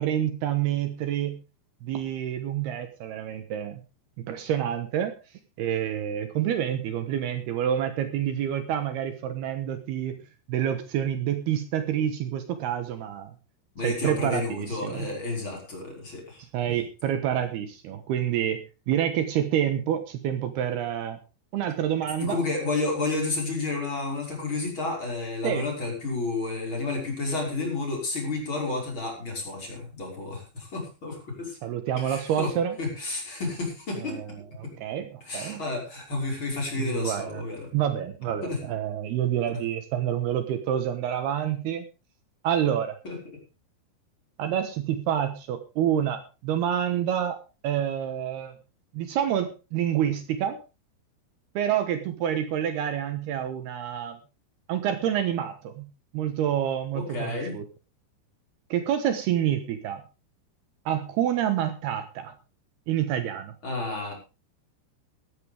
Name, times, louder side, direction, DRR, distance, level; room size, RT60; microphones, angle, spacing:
voice 1, 0.0-1.4 1.8-3.8 4.2-5.1 5.6-10.2 10.5-13.3 13.8-15.1 16.5-21.2 21.5-22.4 25.4-25.6 31.6-32.8 34.0-34.3 34.8-35.6 36.8-37.4 37.7-41.9 42.4-43.0 44.4-47.4 47.6-48.5 48.9-50.6 51.6-54.2 54.7-55.9 56.1-57.6 58.7-60.0 60.9-62.3 62.9-63.5, right 10 dB, 70° right, 9 dB, 3.1 m, -28 dB
voice 2, 13.7-16.4 22.2-31.5 32.0-34.2 34.6-34.7 35.2-37.7 38.4-38.6 43.0-43.4 56.9-57.5 63.6-64.1, left 3 dB, 30° left, 0 dB, 5.9 m, -31 dB
16.0 x 13.5 x 3.5 m, 0.31 s
omnidirectional pair, 5.0 m